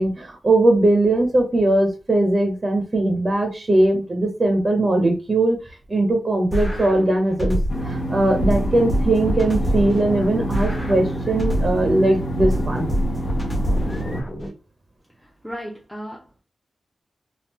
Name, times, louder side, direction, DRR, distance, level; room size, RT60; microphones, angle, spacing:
voice 1, 0.0-5.6 5.9-7.6 7.8-12.9, right 2 dB, 30° right, 3 dB, 0.7 m, -20 dB
sound 1, 6.5-7.9 8.4-11.9 12.4-14.5, equal, 20° left, 1.0 m, -25 dB
sound 2, 7.7-14.2, equal, 45° left, 0.7 m, -28 dB
voice 2, 15.2-16.4, equal, ahead, -4 dB, 0.6 m, -36 dB
3.5 x 2.4 x 2.9 m, 0.31 s
wide cardioid pair, 160°, 0 cm